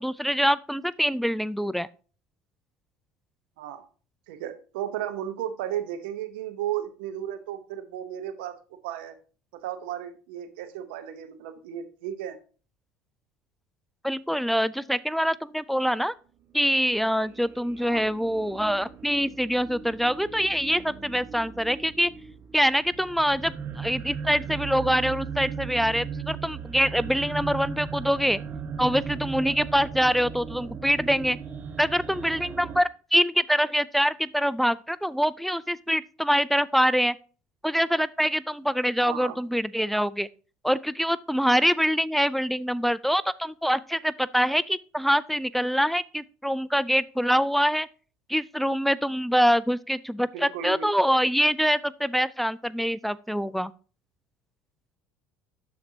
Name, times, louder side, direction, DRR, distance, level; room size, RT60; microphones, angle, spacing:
voice 1, 0.0-1.9 14.0-16.1 16.5-22.1 22.5-28.4 28.8-31.4 31.8-37.2 37.6-40.3 40.6-47.9 48.3-53.7, equal, 5° left, 17 dB, 0.3 m, -25 dB
voice 2, 4.3-8.6 8.8-9.2 9.5-12.4 17.8-18.2 39.0-39.4 50.3-50.9, right 10 dB, 85° right, 10 dB, 0.9 m, -34 dB
sound 1, 16.6-32.8, right 6 dB, 40° right, 0.9 m, -37 dB
12.5 x 4.4 x 2.8 m, 0.38 s
hypercardioid pair, 80°, 6 cm